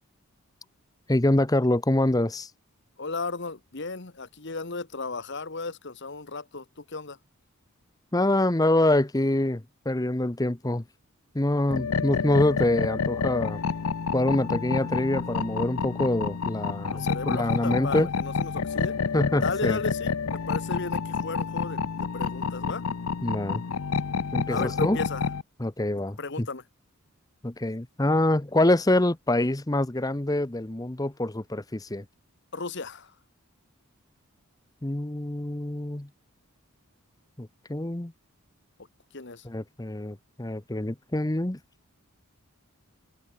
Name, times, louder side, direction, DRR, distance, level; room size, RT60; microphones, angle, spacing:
voice 1, 1.1-2.5 8.1-10.8 11.3-13.6 14.1-18.1 19.1-19.8 23.2-23.6 24.3-25.0 25.6-26.5 27.4-32.0 34.8-36.1 37.4-38.1 39.4-41.6, left 1 dB, 15° left, 0.8 m, -25 dB
voice 2, 3.0-7.2 16.9-18.9 19.4-22.8 24.5-25.2 26.2-26.6 32.5-33.1 39.1-39.4, left 3 dB, 55° left, 1.4 m, -35 dB
sound 1, 11.7-25.4, left 5 dB, 75° left, 0.6 m, -29 dB
head